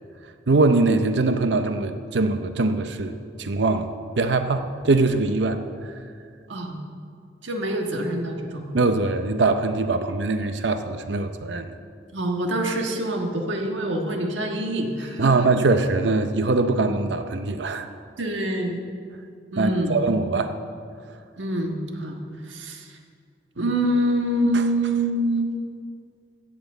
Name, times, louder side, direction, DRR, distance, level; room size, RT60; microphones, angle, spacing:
voice 1, 0.5-5.6 8.7-11.7 15.2-17.9 19.6-20.5 24.5-24.6, right 3 dB, 70° right, 8 dB, 0.6 m, -22 dB
voice 2, 7.4-8.7 12.1-15.3 18.2-18.9 19.5-19.9 21.4-22.2 22.5-22.9 23.6-25.5, right 1 dB, 90° right, 2 dB, 1.5 m, -25 dB
15.5 x 6.0 x 7.9 m, 2.3 s
head